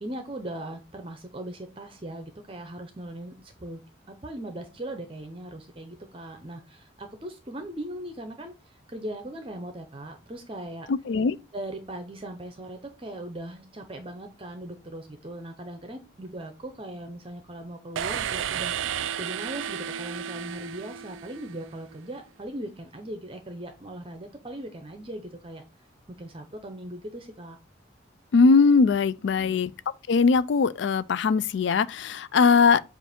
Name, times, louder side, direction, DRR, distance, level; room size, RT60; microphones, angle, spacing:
voice 1, 0.0-3.8 4.1-10.9 11.5-18.8 19.2-25.6 26.2-27.6 29.2-29.6, right 1 dB, 30° right, 0.7 m, -39 dB
voice 2, 10.9-11.4 28.3-29.7 30.1-32.8, left 4 dB, 75° left, 0.4 m, -20 dB
sound 1, 18.0-21.8, right 9 dB, 90° right, 0.4 m, -32 dB
7.7 x 2.6 x 5.0 m
head